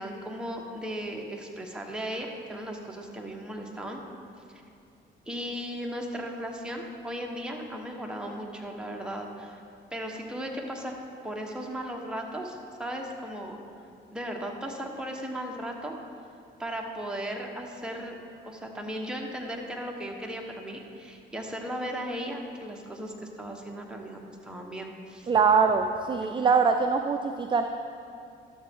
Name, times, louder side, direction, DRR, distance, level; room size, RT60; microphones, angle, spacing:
voice 1, 0.0-4.0 4.5-4.6 5.3-9.6 9.9-11.0 11.2-13.6 14.1-16.0 16.6-18.1 18.4-25.3 26.2-26.6, equal, 5° right, 0 dB, 1.1 m, -36 dB
voice 2, 25.3-27.6, right 5 dB, 25° right, 6 dB, 0.4 m, -23 dB
12.0 x 7.0 x 3.6 m, 2.5 s
cardioid pair, 90°, 20 cm